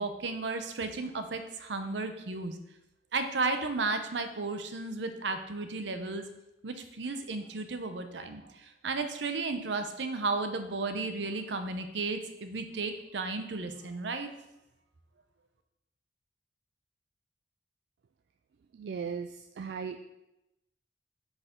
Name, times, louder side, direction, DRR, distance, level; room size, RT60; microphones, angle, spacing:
voice 1, 0.0-2.6 3.1-6.3 6.6-14.3, right 3 dB, 85° right, 8 dB, 0.7 m, -34 dB
voice 2, 18.7-20.1, right 6 dB, 70° right, 7 dB, 0.3 m, -38 dB
7.9 x 4.8 x 3.8 m, 0.90 s
head